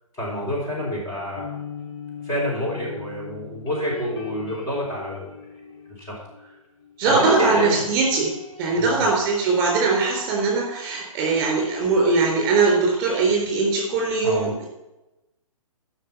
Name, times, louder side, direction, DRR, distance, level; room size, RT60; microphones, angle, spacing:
voice 1, 0.1-1.4 2.2-5.4 6.0-6.5 7.1-7.8 8.7-9.0 14.2-14.5, left 1 dB, 15° left, -5 dB, 3.9 m, -28 dB
sound 1, 0.7-6.5 6.8-10.3, left 3 dB, 45° left, 3.8 m, -40 dB
voice 2, 7.0-8.3 8.6-14.7, right 4 dB, 25° right, -1 dB, 3.7 m, -21 dB
13.0 x 6.0 x 5.9 m, 0.95 s
figure-of-eight pair, 130°, 18 cm